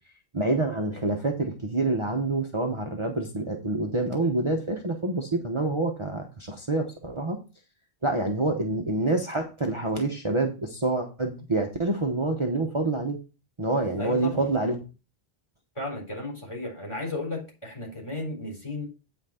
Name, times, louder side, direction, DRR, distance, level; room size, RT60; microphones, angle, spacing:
voice 1, 0.3-7.4 8.0-13.2 13.6-14.8, right 2 dB, 30° right, 2 dB, 1.0 m, -27 dB
voice 2, 14.0-14.5 15.8-18.8, left 2 dB, 25° left, -1 dB, 4.0 m, -34 dB
8.7 x 5.8 x 4.3 m, 0.31 s
omnidirectional pair, 1.1 m